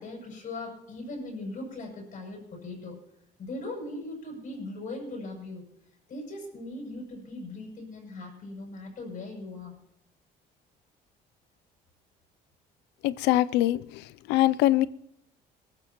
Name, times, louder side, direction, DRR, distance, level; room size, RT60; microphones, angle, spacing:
voice 1, 0.0-3.0 3.4-5.6 6.1-9.8, left 2 dB, 50° left, 0 dB, 7.3 m, -39 dB
voice 2, 13.0-14.0 14.3-14.9, left 15 dB, 90° left, 18 dB, 0.4 m, -23 dB
22.5 x 14.0 x 3.0 m, 0.76 s
cardioid pair, 110°, 17 cm